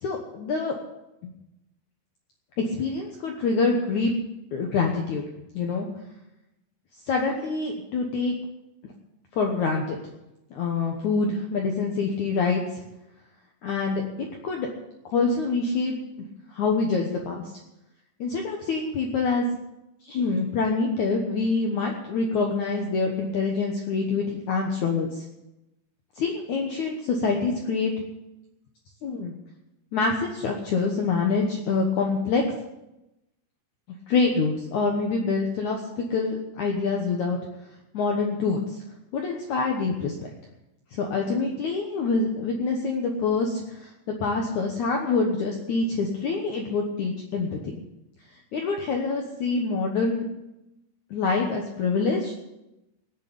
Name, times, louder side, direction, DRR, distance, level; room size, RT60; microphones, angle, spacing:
voice 1, 0.0-0.7 1.2-1.3 2.6-4.1 4.5-5.2 5.5-5.9 7.1-8.3 9.3-10.0 10.5-12.8 13.6-14.7 15.1-16.0 16.5-17.4 18.2-19.5 20.0-25.2 26.2-27.9 29.0-29.3 29.9-32.4 34.1-37.4 37.9-38.8 39.1-40.3 40.9-43.9 44.2-47.5 48.5-50.2 51.1-52.3, left 4 dB, 85° left, 1 dB, 1.7 m, -26 dB
18.5 x 6.8 x 8.6 m, 0.93 s
omnidirectional pair, 5.4 m